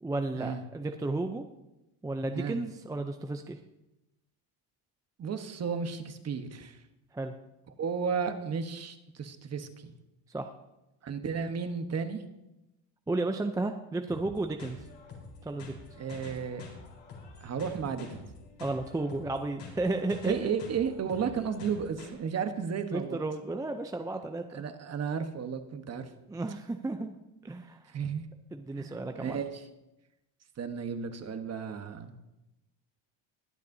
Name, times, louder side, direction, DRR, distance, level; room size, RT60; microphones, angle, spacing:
voice 1, 0.0-1.4 2.0-3.6 7.1-7.3 10.3-10.5 13.1-14.8 15.4-15.7 18.6-20.5 22.9-24.6 26.3-27.2 27.4-27.8 28.5-29.4, right 2 dB, 10° right, 5 dB, 0.5 m, -33 dB
voice 2, 5.2-6.8 7.8-9.9 11.0-12.2 16.0-16.6 17.4-18.2 20.3-23.2 24.5-26.1 27.9-28.2 28.7-29.7 30.6-32.2, right 6 dB, 35° right, 8 dB, 1.1 m, -33 dB
sound 1, 14.1-22.1, left 4 dB, 70° left, 4.1 m, -47 dB
21.0 x 8.3 x 2.7 m, 0.94 s
cardioid pair, 115°, 43 cm